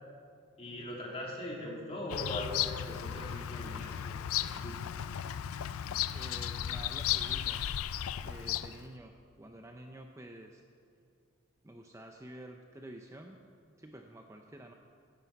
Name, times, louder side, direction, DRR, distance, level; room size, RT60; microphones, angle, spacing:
voice 1, 0.6-4.7, left 1 dB, 30° left, -3 dB, 2.6 m, -41 dB
Bird vocalization bird call bird song, 2.1-8.9, left 10 dB, 85° left, 0.4 m, -35 dB
voice 2, 6.1-7.6 8.2-10.6 11.6-13.4 13.8-14.7, right 1 dB, 15° right, 3 dB, 0.5 m, -49 dB
16.0 x 9.4 x 5.8 m, 2.3 s
head